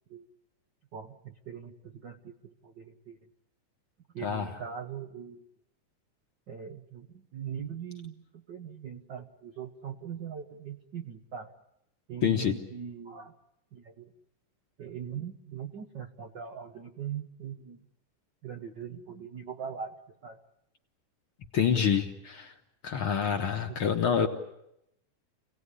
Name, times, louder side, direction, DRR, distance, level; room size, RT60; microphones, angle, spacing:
voice 1, 0.9-3.2 4.1-5.4 6.5-11.5 12.1-13.3 13.7-14.1 14.8-17.8 18.4-20.4 23.7-23.8, right 8 dB, 65° right, 6 dB, 1.0 m, -41 dB
voice 2, 12.2-12.6 21.5-22.5 22.8-24.3, left 7 dB, 55° left, 5 dB, 1.7 m, -27 dB
27.0 x 18.0 x 9.9 m, 0.82 s
omnidirectional pair, 3.7 m